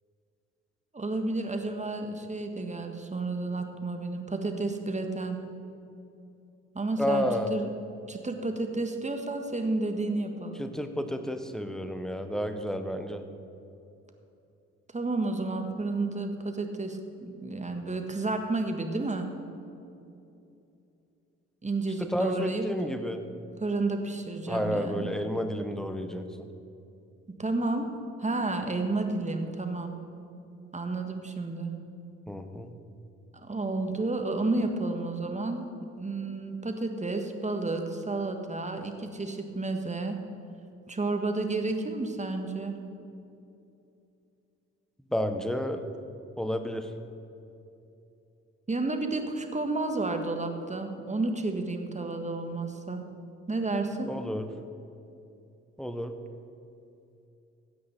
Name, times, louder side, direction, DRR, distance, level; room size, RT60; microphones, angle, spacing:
voice 1, 0.9-5.4 6.7-7.6 8.1-10.6 14.9-19.3 21.6-22.6 23.6-25.1 27.3-27.9 28.2-30.0 30.7-31.8 33.3-40.2 40.9-42.8 48.7-53.1 53.5-54.1, right 2 dB, 20° right, 5 dB, 1.6 m, -31 dB
voice 2, 7.0-7.5 10.6-13.2 22.0-23.2 24.5-26.5 32.3-32.7 45.1-45.8 46.4-46.9 54.0-54.5 55.8-56.1, equal, ahead, 8 dB, 1.2 m, -31 dB
16.0 x 8.6 x 4.4 m, 2.7 s
hypercardioid pair, 45°, 34 cm